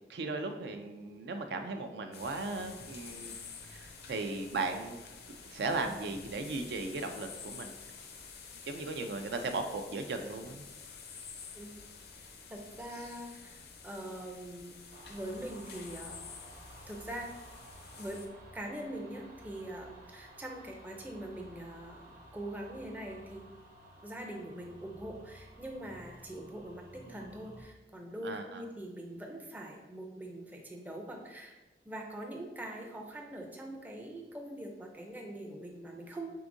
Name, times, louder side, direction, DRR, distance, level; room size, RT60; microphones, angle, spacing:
voice 1, 0.1-3.3 3.7-5.0 5.5-7.8 8.7-10.6 28.2-28.6, right 3 dB, 70° right, 6 dB, 0.4 m, -37 dB
sound 1, 2.1-18.3, left 5 dB, 65° left, 0.5 m, -49 dB
voice 2, 12.2-14.8 15.1-16.2 16.9-17.3 18.0-18.2 18.5-23.4 24.0-31.6 31.8-36.3, right 1 dB, 10° right, 1 dB, 0.4 m, -43 dB
sound 2, 14.9-27.6, right 1 dB, 50° right, 0.8 m, -54 dB
4.7 x 3.5 x 2.6 m, 1.1 s
head